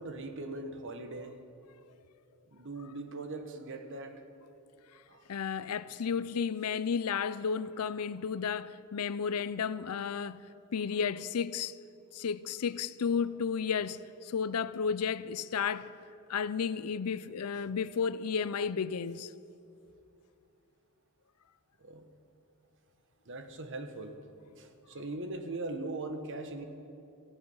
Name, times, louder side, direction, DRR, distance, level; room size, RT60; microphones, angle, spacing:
voice 1, 0.0-1.4 2.5-4.2 5.1-5.2 21.8-22.1 23.2-24.2 24.6-26.6, right 2 dB, 55° right, 1.3 m, -40 dB
voice 2, 5.3-10.4 10.7-11.8 12.1-15.9 16.3-19.3, left 6 dB, 85° left, 0.5 m, -33 dB
17.0 x 14.5 x 5.6 m
head